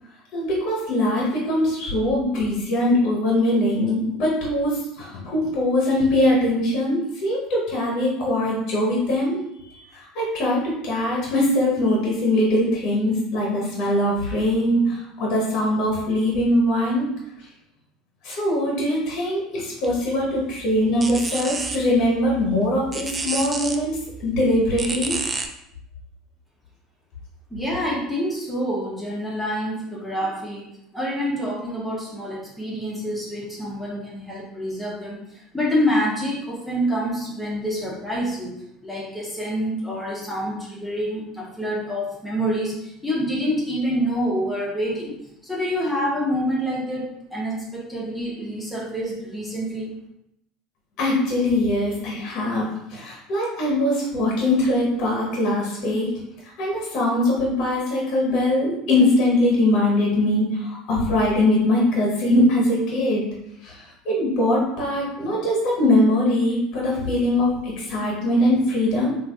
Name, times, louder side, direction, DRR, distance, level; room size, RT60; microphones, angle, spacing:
voice 1, 0.3-17.1 18.2-25.2 51.0-56.2 56.6-63.3 63.6-69.1, left 1 dB, 55° left, -3 dB, 0.9 m, -22 dB
sound 1, 19.8-25.5, right 3 dB, 25° right, 0.4 m, -31 dB
voice 2, 27.5-38.5 38.8-45.2 45.4-49.9, equal, 10° left, -5 dB, 1.0 m, -27 dB
3.5 x 2.5 x 2.4 m, 0.79 s
figure-of-eight pair, 70°, 0 cm